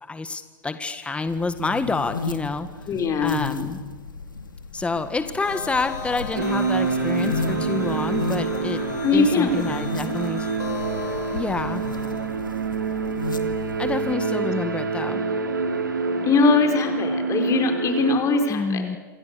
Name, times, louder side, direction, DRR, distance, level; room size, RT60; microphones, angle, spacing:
voice 1, 0.0-2.7 3.2-3.8 4.7-8.8 9.1-10.8 11.3-11.8 13.8-15.2 18.5-19.0, left 3 dB, 10° left, 10 dB, 1.7 m, -28 dB
sound 1, 1.3-14.1, left 4 dB, 85° left, 2.3 m, -35 dB
voice 2, 2.9-3.4 9.0-10.2 14.4-14.5 16.2-18.9, left 3 dB, 30° left, 5 dB, 5.0 m, -22 dB
sound 2, 5.4-12.3, left 9 dB, 60° left, 5.1 m, -38 dB
sound 3, 6.3-18.2, right 4 dB, 85° right, 2.8 m, -26 dB
28.0 x 27.5 x 7.0 m, 1.4 s
figure-of-eight pair, 90°, 10 cm